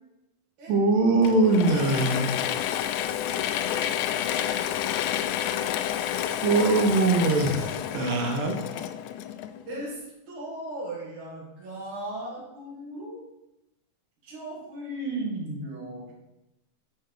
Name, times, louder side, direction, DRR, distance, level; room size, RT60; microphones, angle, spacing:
voice 1, 0.7-2.3 6.4-8.6, right 3 dB, 85° right, 3 dB, 2.9 m, -22 dB
Mechanisms / Drill, 1.2-9.8, left 11 dB, 85° left, 1.7 m, -29 dB
voice 2, 4.4-4.9 6.3-6.6 9.7-13.2 14.2-16.1, right 1 dB, 60° right, -3 dB, 3.4 m, -36 dB
10.0 x 4.6 x 4.8 m, 0.91 s
omnidirectional pair, 3.9 m